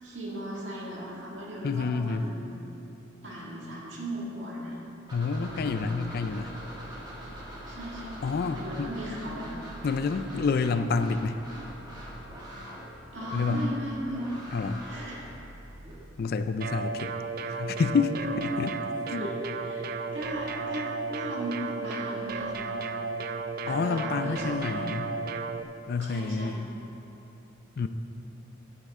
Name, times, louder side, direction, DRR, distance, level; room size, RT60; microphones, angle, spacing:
voice 1, 0.0-2.5 3.2-4.7 5.4-6.0 7.7-9.6 13.1-14.3 14.8-15.3 19.2-23.0 23.7-24.9 26.0-26.7, right 1 dB, 65° right, -4 dB, 2.1 m, -37 dB
voice 2, 1.6-2.2 5.1-6.5 8.2-8.9 9.8-11.4 13.3-13.7 14.5-14.9 16.2-17.1 17.5-19.3 23.7-25.1 25.9-26.6 27.8-27.9, left 4 dB, 50° left, 10 dB, 0.4 m, -28 dB
sound 1, 5.1-15.9, equal, 25° right, 2.1 m, -43 dB
sound 2, 16.6-25.6, right 4 dB, 50° right, 0.4 m, -34 dB
10.5 x 9.9 x 3.6 m, 2.9 s
head